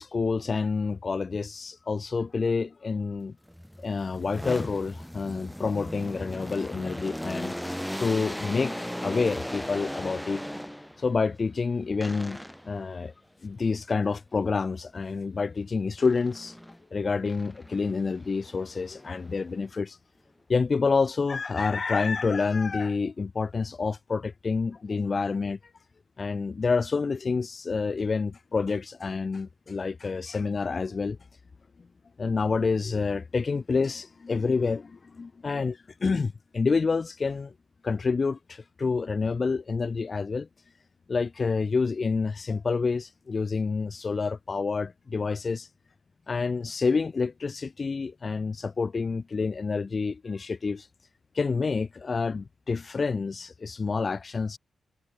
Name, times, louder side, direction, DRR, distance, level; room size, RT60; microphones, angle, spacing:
voice 1, 0.0-3.3 3.8-7.6 8.0-10.4 11.0-12.4 12.7-13.1 13.4-16.6 16.9-20.0 20.5-25.6 26.2-31.2 32.2-37.5 37.8-40.5 41.1-45.7 46.3-50.9 51.3-54.6, left 4 dB, 50° left, 7.8 m, -28 dB
sound 1, 3.5-11.1 12.0-12.8 16.0-16.8 17.3-19.6, equal, 5° left, 4.1 m, -37 dB
cardioid pair, 55°, 0 cm